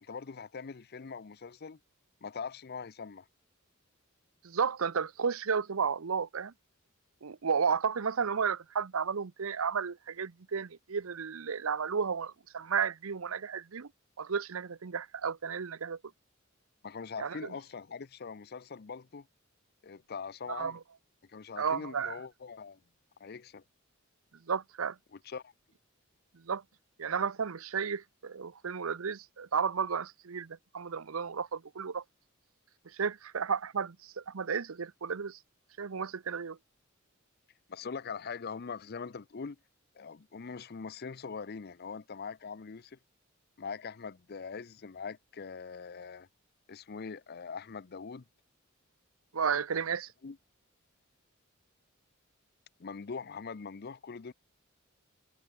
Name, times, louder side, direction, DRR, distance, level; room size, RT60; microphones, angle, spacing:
voice 1, 0.0-1.8 2.2-3.3 16.8-19.3 19.8-20.7 21.3-22.8 23.2-23.6 25.1-25.5 37.7-39.6 40.0-43.0 43.6-46.3 46.7-48.2 49.7-49.8 50.2-50.4 52.8-54.3, left 5 dB, 50° left, 0.6 m, -42 dB
voice 2, 4.4-6.5 7.2-13.9 14.2-16.0 17.2-17.5 20.5-20.8 21.6-22.2 24.5-25.0 26.3-26.6 27.0-32.0 32.9-35.4 35.8-36.6 49.3-50.1, right 6 dB, 90° right, 0.7 m, -33 dB
head